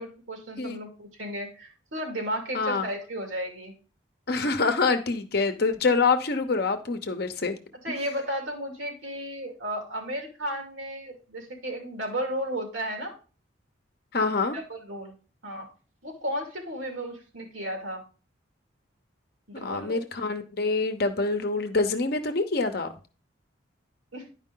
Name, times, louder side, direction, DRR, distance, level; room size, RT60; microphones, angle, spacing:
voice 1, 0.0-3.7 7.8-13.1 14.5-15.1 15.4-15.7 16.0-18.0 19.5-20.0 24.1-24.3, equal, 75° right, 2 dB, 2.4 m, -34 dB
voice 2, 2.5-2.9 4.3-7.5 7.9-8.0 14.1-14.6 19.6-22.9, left 4 dB, 50° left, 7 dB, 0.8 m, -26 dB
10.0 x 4.9 x 3.8 m, 0.36 s
head